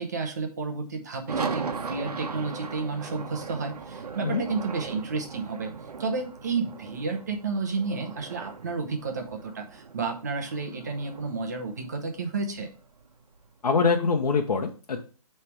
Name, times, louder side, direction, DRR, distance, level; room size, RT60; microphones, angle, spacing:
voice 1, 0.0-12.7, right 4 dB, 30° right, 4 dB, 0.8 m, -31 dB
sound 1, 1.3-13.5, right 5 dB, 80° right, 1.0 m, -38 dB
voice 2, 13.6-15.0, left 5 dB, 80° left, 1 dB, 1.0 m, -24 dB
6.5 x 3.4 x 6.0 m, 0.39 s
hypercardioid pair, 180°, 20 cm